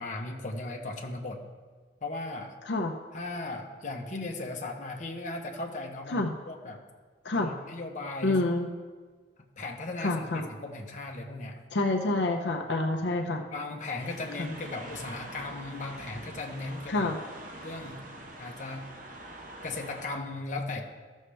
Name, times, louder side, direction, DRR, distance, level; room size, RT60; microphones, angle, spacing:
voice 1, 0.0-1.4 2.0-2.5 3.1-6.8 7.3-8.4 9.6-11.6 13.5-17.1 17.6-18.0 18.4-18.9 19.6-20.8, left 2 dB, 45° left, 1 dB, 1.0 m, -37 dB
voice 2, 8.2-8.7 10.0-10.5 11.7-13.5 16.9-17.2, left 2 dB, 75° left, 2 dB, 0.7 m, -27 dB
sound 1, 14.0-20.1, right 1 dB, 45° right, 1.0 m, -45 dB
14.5 x 6.4 x 3.4 m, 1.4 s
head